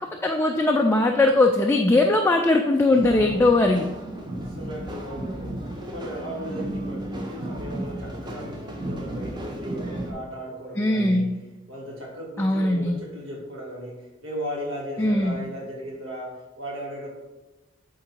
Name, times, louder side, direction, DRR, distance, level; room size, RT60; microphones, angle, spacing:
voice 1, 0.2-3.9 10.8-11.3 12.4-13.0 15.0-15.4, left 2 dB, 10° left, 2 dB, 0.3 m, -20 dB
voice 2, 2.8-3.3 4.2-11.4 11.7-17.2, equal, 65° right, -2 dB, 2.1 m, -36 dB
sound 1, 3.0-10.1, right 1 dB, 20° right, 0.8 m, -34 dB
8.3 x 3.9 x 4.4 m, 1.1 s
head